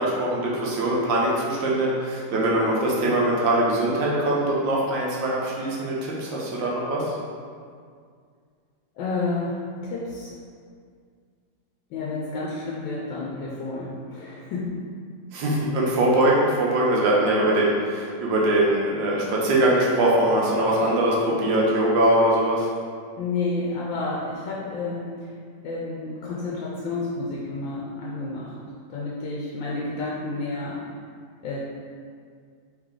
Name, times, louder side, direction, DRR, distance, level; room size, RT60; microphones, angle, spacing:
voice 1, 0.0-7.1 15.3-22.7, right 1 dB, 80° right, -4 dB, 1.5 m, -22 dB
voice 2, 8.9-10.4 11.9-14.8 23.2-25.3 25.6-28.6 28.9-30.9 31.4-31.6, left 3 dB, 85° left, -5 dB, 1.3 m, -30 dB
3.7 x 3.2 x 3.7 m, 2.1 s
omnidirectional pair, 2.0 m